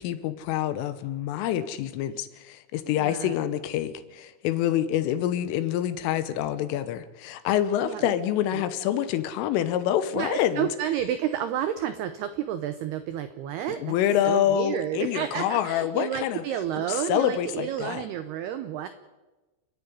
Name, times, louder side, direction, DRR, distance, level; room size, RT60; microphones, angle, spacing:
voice 1, 0.0-10.7 13.8-16.4 16.8-18.0, left 11 dB, 80° left, 12 dB, 3.4 m, -26 dB
voice 2, 2.9-3.4 7.8-8.1 8.5-8.6 10.1-14.0 14.2-18.9, right 10 dB, 85° right, 11 dB, 2.3 m, -31 dB
29.5 x 10.5 x 9.8 m, 1.2 s
omnidirectional pair, 5.9 m